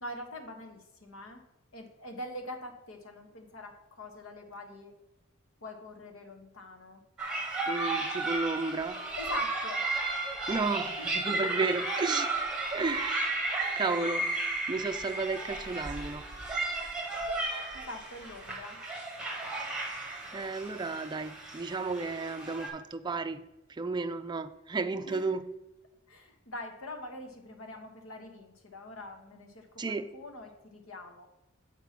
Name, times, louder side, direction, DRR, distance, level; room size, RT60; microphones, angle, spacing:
voice 1, 0.0-1.4 1.7-4.9 5.6-7.0 9.2-9.8 11.0-11.7 13.6-13.8 16.7-16.8 17.7-18.8 25.1-25.3 26.1-31.3, left 1 dB, 90° left, 4 dB, 1.2 m, -44 dB
sound 1, 7.2-22.7, right 2 dB, 5° right, 1.4 m, -34 dB
voice 2, 7.7-9.0 10.5-12.3 12.7-14.3 14.7-16.2 20.3-23.4 23.7-25.5 29.8-30.1, right 4 dB, 20° right, 8 dB, 0.4 m, -33 dB
7.2 x 4.4 x 5.9 m, 0.96 s
head